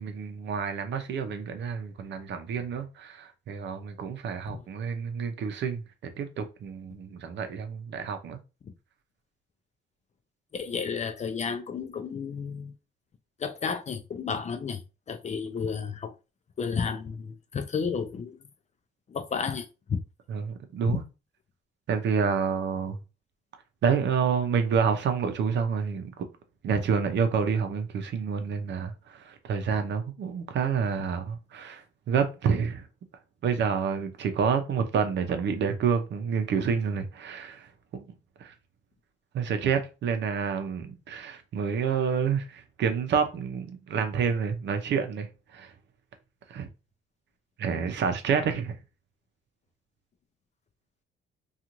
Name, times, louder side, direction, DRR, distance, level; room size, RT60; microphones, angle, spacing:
voice 1, 0.0-8.4 20.3-21.0 21.9-23.0 23.8-26.1 26.6-32.8 33.4-37.6 38.0-38.1 38.4-38.5 39.3-45.3 45.5-45.7 46.5-46.7 47.6-48.7, right 6 dB, 65° right, 0.6 m, -28 dB
voice 2, 10.5-12.7 13.4-14.8 15.1-16.1 16.6-18.4 19.1-20.0 20.9-21.0, left 6 dB, 35° left, 0.4 m, -32 dB
2.5 x 2.4 x 2.9 m
cardioid pair, 90°, 20 cm